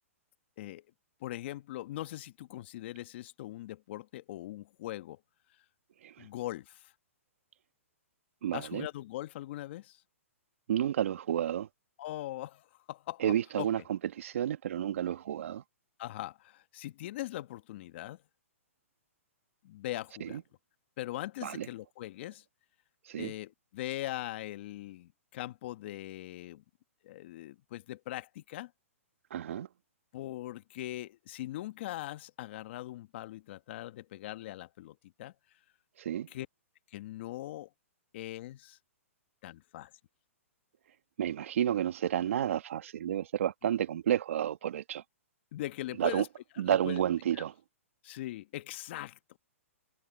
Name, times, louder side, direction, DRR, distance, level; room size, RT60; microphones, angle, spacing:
voice 1, 1.2-5.2 6.2-6.9 8.5-10.0 12.0-13.7 16.0-18.2 19.6-20.4 21.0-22.4 23.2-26.6 27.0-28.7 30.1-35.3 36.3-36.5 36.9-37.7 38.1-38.8 39.4-39.9 45.5-46.3 46.7-47.0 47.3-47.4 48.0-49.2, left 15 dB, 50° left, 1.5 m, -41 dB
voice 2, 8.4-8.9 10.7-11.7 13.2-15.6 20.2-20.4 21.4-21.7 23.0-23.3 29.3-29.7 36.0-36.3 41.2-45.0 46.0-46.2 46.6-47.5, right 10 dB, 65° right, 1.8 m, -31 dB
hypercardioid pair, 135°, 8 cm